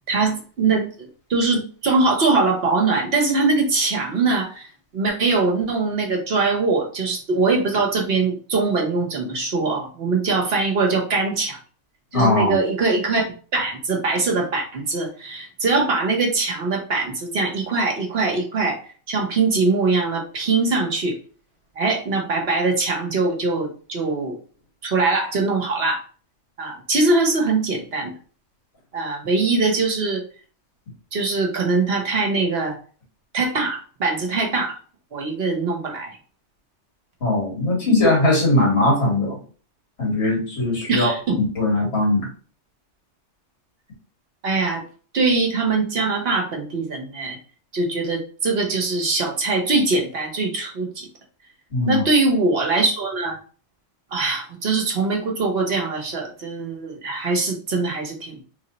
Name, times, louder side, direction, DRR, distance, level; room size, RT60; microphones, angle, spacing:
voice 1, 0.1-4.7 4.9-11.6 12.1-13.2 13.5-18.8 19.1-21.2 21.8-24.3 24.8-26.0 26.6-28.1 28.9-30.2 31.1-32.8 33.3-34.8 35.1-36.2 37.8-37.9 40.9-41.4 44.4-44.8 45.1-47.4 47.7-51.1 51.9-53.4 54.1-58.4, right 3 dB, 60° right, 1 dB, 1.0 m, -22 dB
voice 2, 12.1-12.6 37.2-39.4 40.0-41.1 41.6-42.3 51.7-52.1, left 2 dB, 60° left, -3 dB, 1.8 m, -19 dB
3.3 x 2.0 x 3.9 m, 0.40 s
omnidirectional pair, 1.2 m